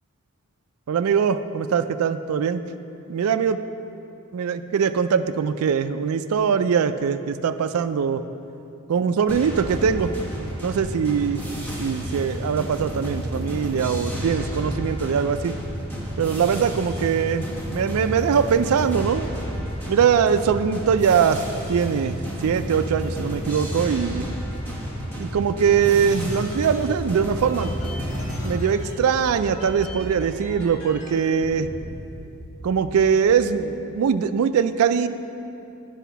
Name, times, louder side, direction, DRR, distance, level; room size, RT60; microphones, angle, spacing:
voice 1, 0.9-2.6 3.1-3.6 4.3-8.2 8.9-10.1 10.4-11.4 11.8-15.5 16.2-19.3 19.9-21.4 21.7-24.3 25.2-27.7 28.4-31.7 32.6-35.1, right 7 dB, 70° right, 10 dB, 0.3 m, -22 dB
sound 1, 9.3-28.6, equal, 10° left, 1.2 m, -31 dB
sound 2, 25.7-31.1 31.4-31.9 32.2-33.7, equal, 30° left, 1.5 m, -36 dB
10.0 x 5.0 x 5.7 m, 2.8 s
head